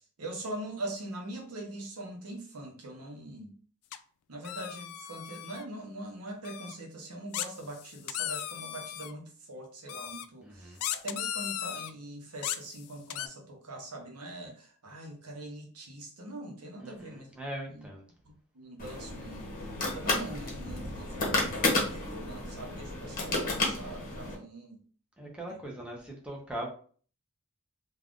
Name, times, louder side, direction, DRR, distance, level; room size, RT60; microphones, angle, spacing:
voice 1, 0.2-3.5 4.3-17.3 17.7-17.9 18.2-19.7 19.9-24.8 25.5-25.6, right 1 dB, 85° right, 0.8 m, -42 dB
sound 1, 3.9-4.0 4.4-5.6 6.4-6.7 7.3-9.1 9.9-10.2 10.8-11.9 12.4-13.3, left 11 dB, 75° left, 0.3 m, -36 dB
voice 2, 10.4-10.8 16.8-18.0 25.2-26.7, right 1 dB, 5° right, 0.6 m, -41 dB
sound 2, 18.8-24.4, left 2 dB, 40° left, 0.9 m, -32 dB
2.5 x 2.3 x 3.5 m
head